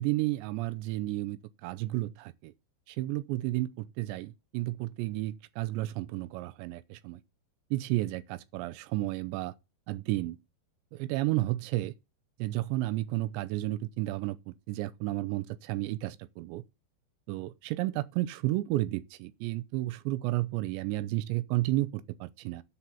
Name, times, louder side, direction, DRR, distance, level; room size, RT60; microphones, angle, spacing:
voice 1, 0.0-1.4 1.6-2.5 3.0-7.2 7.7-9.5 9.9-10.4 11.0-11.9 12.4-16.6 17.3-22.6, right 17 dB, 85° right, 2.9 m, -32 dB
9.9 x 4.6 x 7.0 m
omnidirectional pair, 5.2 m